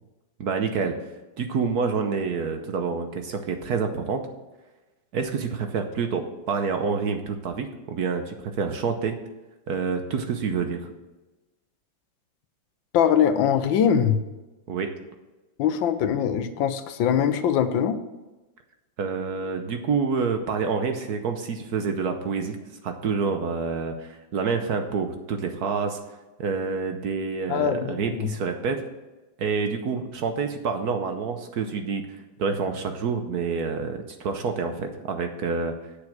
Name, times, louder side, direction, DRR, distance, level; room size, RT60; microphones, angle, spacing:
voice 1, 0.4-0.9 1.4-4.2 5.1-9.2 9.7-10.9 14.7-14.9 19.0-22.6 22.8-26.0 26.4-28.8 29.4-32.1 32.4-35.7, right 5 dB, 60° right, 6 dB, 1.2 m, -27 dB
voice 2, 12.9-14.2 15.6-18.0 27.5-28.3, left 8 dB, 80° left, 10 dB, 1.4 m, -22 dB
8.3 x 6.6 x 6.4 m, 1.1 s
omnidirectional pair, 2.1 m